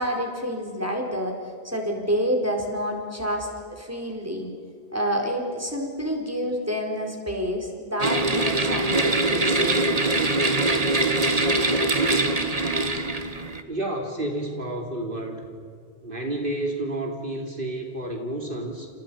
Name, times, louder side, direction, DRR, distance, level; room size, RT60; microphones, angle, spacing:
voice 1, 0.0-1.3 1.6-4.5 4.9-9.9, equal, 15° right, 1 dB, 4.6 m, -28 dB
sound 1, 8.0-13.6, right 2 dB, 35° right, 1.7 m, -23 dB
voice 2, 13.7-15.5 16.0-18.9, right 1 dB, 50° right, 2 dB, 3.2 m, -30 dB
30.0 x 29.0 x 5.6 m, 2.3 s
omnidirectional pair, 1.1 m